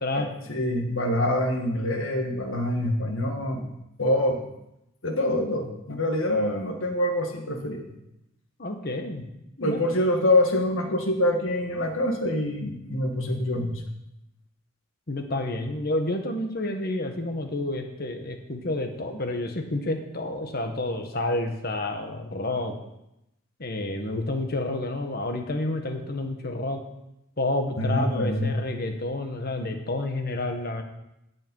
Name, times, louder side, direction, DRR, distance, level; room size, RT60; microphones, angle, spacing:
voice 1, 0.1-3.7 4.0-4.4 5.0-7.9 9.6-13.8 27.8-28.6, left 1 dB, 70° left, 3 dB, 1.9 m, -25 dB
voice 2, 8.6-9.3 9.6-9.8 15.1-22.7 23.6-26.8 27.4-30.8, left 2 dB, 45° left, 5 dB, 1.3 m, -29 dB
16.5 x 5.6 x 5.5 m, 0.85 s
head